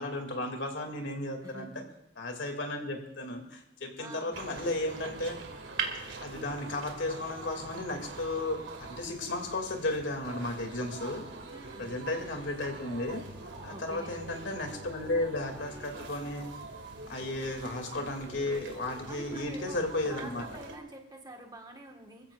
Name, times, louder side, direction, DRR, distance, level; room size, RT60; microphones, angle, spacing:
voice 1, 0.0-1.7 2.2-5.5 6.2-11.2 11.8-13.2 13.6-16.5 17.1-20.4, left 2 dB, 75° left, 3 dB, 2.5 m, -34 dB
voice 2, 1.4-1.9 4.0-4.4 11.5-11.9 13.7-14.2 19.1-19.8 20.1-22.3, right 1 dB, 20° right, 2 dB, 1.5 m, -46 dB
sound 1, 4.3-20.8, right 3 dB, 75° right, 2.2 m, -43 dB
25.5 x 15.0 x 2.5 m, 0.80 s
head